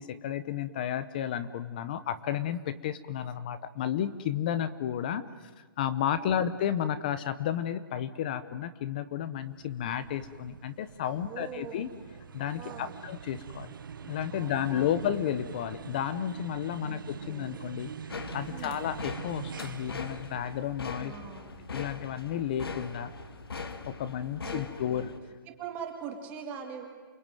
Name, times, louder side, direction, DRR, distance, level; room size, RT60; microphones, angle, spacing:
voice 1, 0.0-11.9 12.3-13.7 14.1-17.9 18.3-21.1 21.7-23.1 23.9-25.1, left 10 dB, 25° left, 14 dB, 0.8 m, -32 dB
voice 2, 6.1-6.5 11.1-11.9 12.6-13.0 14.3-15.1 16.7-17.6 18.5-18.9 21.0-21.6 24.4-25.1 25.5-26.9, right 7 dB, 15° right, 3 dB, 2.3 m, -43 dB
sound 1, 9.4-23.9, right 7 dB, 65° right, 1.2 m, -45 dB
sound 2, 18.1-25.2, left 4 dB, 90° left, 2.6 m, -41 dB
28.5 x 21.5 x 9.2 m, 1.4 s
hypercardioid pair, 175°, 12 cm